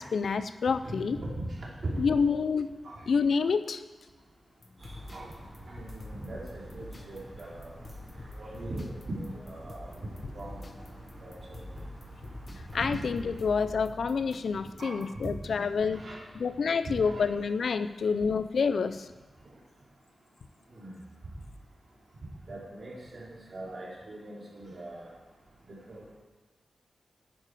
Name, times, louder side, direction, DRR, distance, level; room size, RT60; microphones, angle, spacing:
voice 1, 0.0-1.2 2.0-2.7 3.1-3.8 12.7-16.0 16.3-19.1, left 5 dB, 70° left, 11 dB, 0.4 m, -28 dB
voice 2, 0.8-2.1 2.8-3.0 5.1-5.3 5.7-7.7 8.3-10.0 10.3-10.6 11.2-11.7 12.9-13.0 14.8-15.0 15.9-16.2 16.8-17.3 20.7-20.9 22.5-25.1 25.7-26.1, right 1 dB, 50° right, -4 dB, 2.8 m, -40 dB
sound 1, 4.6-15.7, left 2 dB, 35° left, 0.7 m, -48 dB
sound 2, 4.8-13.4, right 1 dB, 25° right, 4.0 m, -48 dB
9.7 x 9.6 x 4.7 m, 1.2 s
wide cardioid pair, 165°, 0 cm